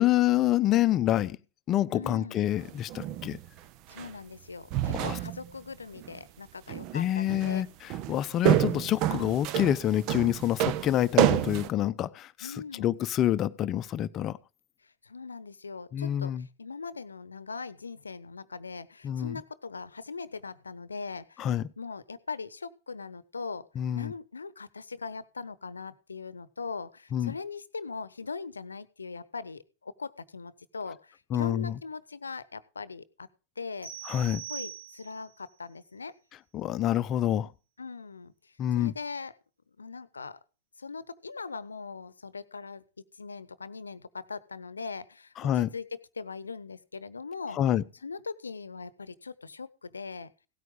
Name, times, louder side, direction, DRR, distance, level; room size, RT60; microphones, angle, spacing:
voice 1, 0.0-1.4 1.7-3.4 4.9-5.2 6.9-7.7 8.1-14.4 15.9-16.4 19.0-19.4 21.4-21.6 23.8-24.1 27.1-27.3 31.3-31.7 34.0-34.4 36.5-37.5 38.6-38.9 45.4-45.7 47.6-47.8, left 12 dB, 30° left, 0.7 m, -27 dB
voice 2, 1.9-2.4 3.9-7.6 12.4-13.0 15.0-23.7 23.9-33.3 33.6-33.9 34.5-36.2 37.8-39.3 39.8-40.4 40.8-42.8 43.2-47.6 48.0-50.3, left 4 dB, 75° left, 0.9 m, -40 dB
sound 1, 2.6-3.4 4.0-4.1 4.7-5.5 6.0-6.2 6.7-7.0 7.3-7.6 7.9-11.7, right 12 dB, 40° right, 0.8 m, -28 dB
sound 2, 33.8-35.3, right 9 dB, 80° right, 5.3 m, -41 dB
17.0 x 9.2 x 3.7 m
figure-of-eight pair, 90°, 0 cm